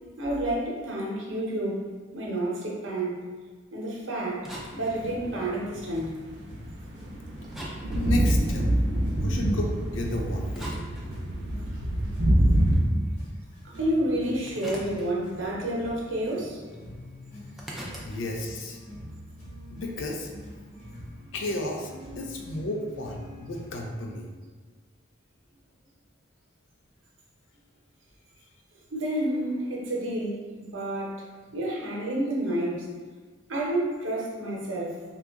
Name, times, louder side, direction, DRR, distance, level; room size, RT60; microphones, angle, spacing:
voice 1, 0.2-3.2 3.7-6.2 9.4-9.5 13.6-16.6 28.9-31.3 31.5-32.9 33.5-35.0, right 1 dB, 85° right, -3 dB, 0.8 m, -30 dB
sound 1, 4.3-7.1 7.4-9.5 10.1-11.7 12.1-15.7 15.9-16.8 17.0-20.4, equal, ahead, 0.4 m, -43 dB
sound 2, 5.0-5.5 6.4-12.8, right 1 dB, 60° right, 0.5 m, -25 dB
sound 3, 5.7-23.8, left 1 dB, 30° left, 1.0 m, -45 dB
voice 2, 7.9-8.7 9.1-10.8 18.1-18.8 19.7-20.3 21.3-21.9 22.2-24.3, left 1 dB, 80° left, 1 dB, 0.5 m, -33 dB
2.9 x 2.4 x 3.5 m, 1.4 s
head